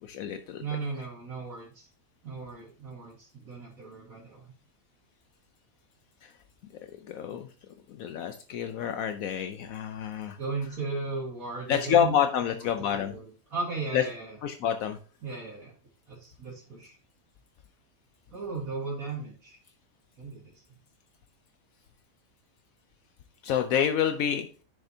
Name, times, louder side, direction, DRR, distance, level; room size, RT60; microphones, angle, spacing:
voice 1, 0.0-0.6 6.2-6.3 7.1-7.5 7.9-10.4 11.7-13.2 13.9-14.0 14.4-15.0 23.4-24.5, left 8 dB, 75° left, 7 dB, 1.0 m, -28 dB
voice 2, 0.6-1.9 2.2-4.5 10.4-12.1 12.9-14.4 15.2-15.7 16.1-17.0 18.3-19.6 20.2-20.4, right 4 dB, 70° right, -4 dB, 2.2 m, -36 dB
9.9 x 7.0 x 2.7 m, 0.38 s
omnidirectional pair, 1.5 m